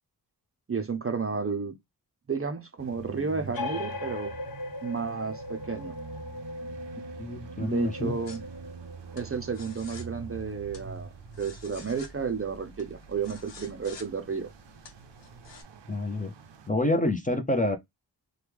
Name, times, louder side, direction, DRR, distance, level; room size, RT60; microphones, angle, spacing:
voice 1, 0.7-1.7 2.3-4.3 4.8-6.0 7.6-8.4 9.1-11.1 11.4-14.5, right 5 dB, 35° right, 0.5 m, -32 dB
sound 1, 2.8-16.7, right 5 dB, 85° right, 0.6 m, -46 dB
sound 2, 3.5-10.8, left 2 dB, 55° left, 1.1 m, -40 dB
voice 2, 7.2-8.1 15.9-16.3 16.7-17.8, left 1 dB, 20° left, 0.6 m, -27 dB
sound 3, 8.3-15.6, left 2 dB, 85° left, 0.9 m, -50 dB
3.1 x 2.3 x 3.3 m
wide cardioid pair, 90°, 42 cm